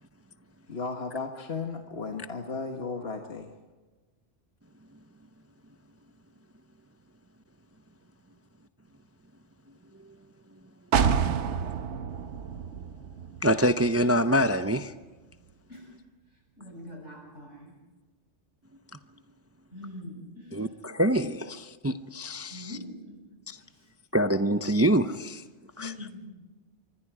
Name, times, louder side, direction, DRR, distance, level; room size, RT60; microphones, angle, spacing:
voice 1, 0.7-3.5, left 4 dB, 60° left, 3 dB, 1.8 m, -35 dB
sound 1, 10.9-14.7 15.0-15.1, right 6 dB, 80° right, 1.2 m, -29 dB
voice 2, 13.4-14.9 20.5-22.8 23.5-23.6 24.1-25.4 25.8-25.9, equal, 20° right, 9 dB, 0.5 m, -25 dB
voice 3, 16.6-17.7 19.7-20.7 22.5-23.0 23.7-23.8 25.8-26.3, left 1 dB, 85° left, 0 dB, 8.0 m, -43 dB
26.0 x 24.5 x 4.9 m, 1.3 s
omnidirectional pair, 1.2 m